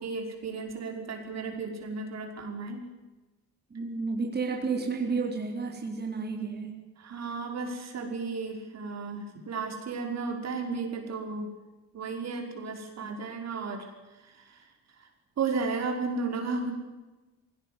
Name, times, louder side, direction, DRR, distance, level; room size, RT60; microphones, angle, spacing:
voice 1, 0.0-2.9 7.0-11.5 11.9-13.9 14.2-14.6 15.4-16.7, right 4 dB, 60° right, 2 dB, 5.4 m, -34 dB
voice 2, 3.7-6.8, right 4 dB, 35° right, 1 dB, 4.0 m, -31 dB
20.5 x 17.5 x 9.8 m, 1.2 s
cardioid pair, 90°, 30 cm